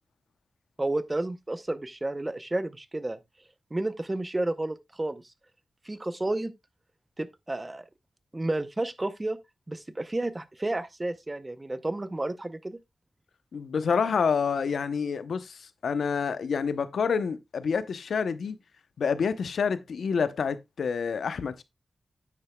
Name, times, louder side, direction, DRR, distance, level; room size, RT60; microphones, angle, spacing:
voice 1, 0.8-3.2 3.7-5.2 5.9-6.5 7.2-7.8 8.3-9.4 9.7-12.8, right 2 dB, 20° right, 0.7 m, -31 dB
voice 2, 13.5-18.6 19.0-21.6, left 6 dB, 85° left, 0.7 m, -28 dB
9.6 x 8.9 x 2.2 m
wide cardioid pair, 100°, 0 cm